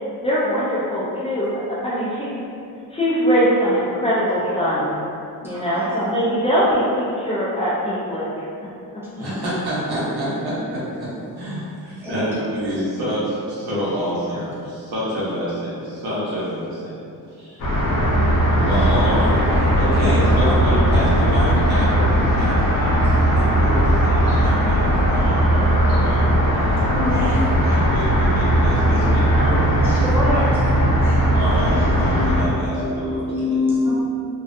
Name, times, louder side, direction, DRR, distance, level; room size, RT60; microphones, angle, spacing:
voice 1, 0.2-2.4 2.9-5.0 5.4-8.5 8.9-9.3, equal, 15° left, -9 dB, 0.3 m, -22 dB
voice 2, 5.4-5.9 9.0-9.4 11.5-11.6 12.0-12.4 12.7-12.8 14.4-14.5 26.9-27.7 29.8-30.6 31.0-31.2 32.0-33.9, left 2 dB, 5° right, -10 dB, 0.8 m, -26 dB
voice 3, 9.2-17.0 17.4-17.6 18.6-26.8 27.1-27.3 27.6-30.0 30.3-30.4 31.3-33.2, equal, 80° right, -9 dB, 1.1 m, -28 dB
sound 1, 17.6-32.4, right 1 dB, 60° left, 0.7 m, -18 dB
2.5 x 2.1 x 2.6 m, 2.5 s
cardioid pair, 125°, 37 cm